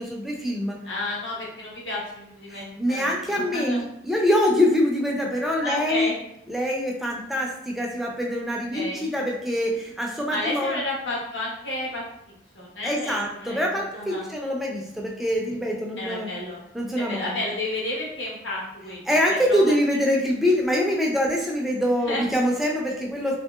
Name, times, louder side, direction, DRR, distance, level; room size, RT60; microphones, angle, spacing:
voice 1, 0.0-0.8 2.5-6.1 6.5-10.8 12.8-16.3 16.7-17.4 19.1-23.4, equal, ahead, -2 dB, 0.4 m, -24 dB
voice 2, 0.8-3.8 5.6-6.1 8.7-9.0 10.3-12.0 12.5-14.3 16.0-16.6 17.0-19.7 22.0-22.2, left 2 dB, 80° left, -5 dB, 1.0 m, -31 dB
2.9 x 2.7 x 2.3 m, 0.77 s
head